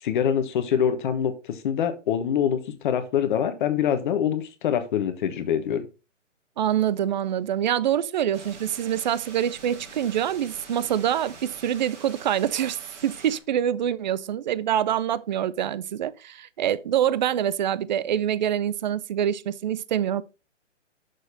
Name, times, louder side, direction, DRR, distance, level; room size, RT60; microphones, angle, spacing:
voice 1, 0.0-5.9, left 8 dB, 40° left, 1.2 m, -25 dB
voice 2, 6.6-20.2, right 10 dB, 40° right, 0.4 m, -25 dB
sound 1, 8.3-13.4, right 4 dB, 65° right, 3.7 m, -45 dB
6.6 x 6.4 x 4.4 m
hypercardioid pair, 140°, 37 cm